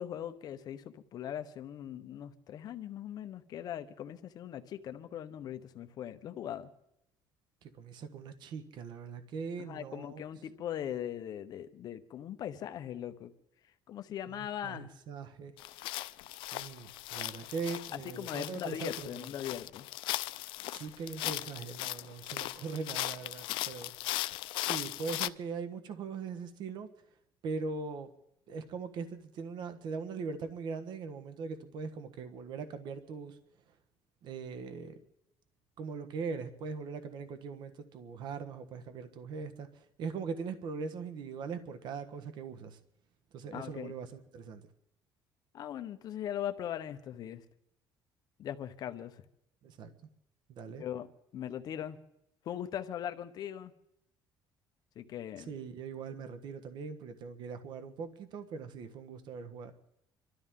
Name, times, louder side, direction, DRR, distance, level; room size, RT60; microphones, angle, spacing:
voice 1, 0.0-6.7 9.6-13.3 13.9-14.9 17.9-19.8 43.5-43.9 45.5-47.4 48.4-49.2 50.8-51.1 51.3-52.0 52.4-53.7 55.0-55.5, left 10 dB, 50° left, 0.9 m, -40 dB
voice 2, 7.6-10.2 14.3-15.5 16.5-19.3 20.7-23.9 24.5-26.9 27.4-28.1 28.5-33.4 34.2-35.0 35.8-42.8 43.3-44.7 49.6-49.9 50.5-50.8 55.5-59.7, right 5 dB, 65° right, 1.3 m, -41 dB
sound 1, 15.6-25.3, left 17 dB, 85° left, 0.5 m, -38 dB
26.5 x 13.0 x 3.7 m
cardioid pair, 145°, 8 cm